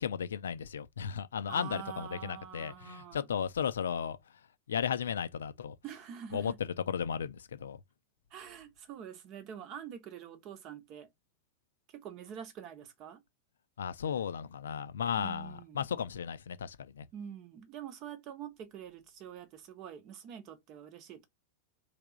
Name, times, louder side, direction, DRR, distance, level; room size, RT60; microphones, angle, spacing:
voice 1, 0.0-5.8 6.3-7.8 13.8-17.1, left 7 dB, 65° left, 0.4 m, -35 dB
voice 2, 1.5-3.3 5.8-6.6 8.3-11.1 11.9-13.2 15.2-15.8 17.1-21.3, right 9 dB, 40° right, 0.8 m, -46 dB
3.3 x 2.8 x 3.7 m
figure-of-eight pair, 90°, 0 cm